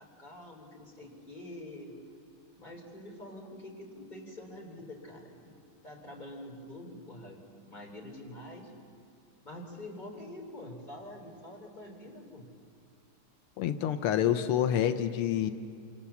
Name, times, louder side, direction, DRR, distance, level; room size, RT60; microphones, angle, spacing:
voice 1, 0.0-2.0 2.5-5.5 5.8-7.4 7.7-8.7 9.4-12.5, left 1 dB, 20° left, 0 dB, 4.1 m, -46 dB
voice 2, 13.6-15.5, left 10 dB, 90° left, 10 dB, 1.8 m, -27 dB
27.5 x 26.5 x 7.2 m, 2.3 s
omnidirectional pair, 2.4 m